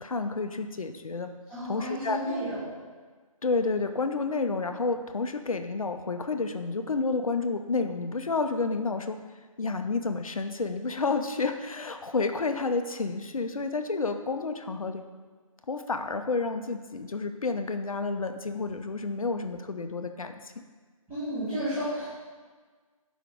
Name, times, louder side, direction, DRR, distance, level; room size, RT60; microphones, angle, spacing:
voice 1, 0.0-1.3 1.6-2.2 3.4-9.2 9.6-15.0 15.7-20.6, left 3 dB, 70° left, 8 dB, 0.5 m, -30 dB
voice 2, 1.5-2.5 21.1-22.1, equal, 10° right, -16 dB, 2.0 m, -32 dB
6.4 x 5.0 x 3.7 m, 1.4 s
figure-of-eight pair, 140°, 18 cm